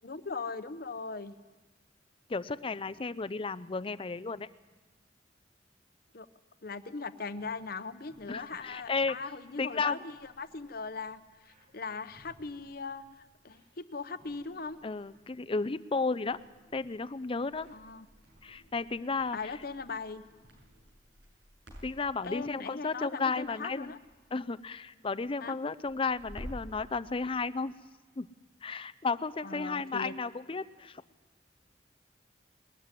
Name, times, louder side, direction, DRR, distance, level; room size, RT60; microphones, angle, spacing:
voice 1, 0.0-1.3 6.1-6.3 6.6-13.0 13.4-14.8 17.7-18.1 19.3-20.2 22.2-24.0 25.4-25.5 29.4-30.1, left 4 dB, 55° left, 13 dB, 0.9 m, -39 dB
voice 2, 2.3-4.5 8.3-9.2 9.6-10.0 14.8-16.4 16.7-17.7 18.4-19.4 21.8-23.9 24.3-27.7 28.2-28.3 28.6-31.0, left 4 dB, 30° left, 14 dB, 0.5 m, -33 dB
sound 1, 7.3-21.1, right 1 dB, 55° right, 5.1 m, -65 dB
Crackle, 17.5-26.8, equal, 90° right, 6.6 m, -51 dB
20.5 x 13.5 x 9.7 m, 1.3 s
head